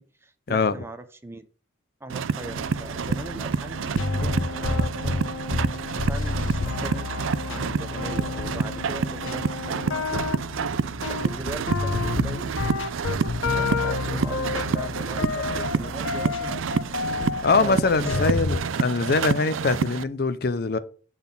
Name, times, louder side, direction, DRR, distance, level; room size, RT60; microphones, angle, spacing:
voice 1, 0.0-1.5 2.0-5.2 5.9-7.1 7.5-10.3 11.1-12.5 13.4-16.6 17.6-18.5, right 1 dB, 10° right, 0.6 m, -40 dB
sound 1, 2.1-20.0, right 5 dB, 85° right, 0.5 m, -28 dB
sound 2, 2.4-18.6, left 3 dB, 90° left, 0.8 m, -30 dB
voice 2, 17.4-20.8, left 3 dB, 50° left, 0.5 m, -23 dB
8.7 x 4.0 x 5.4 m
head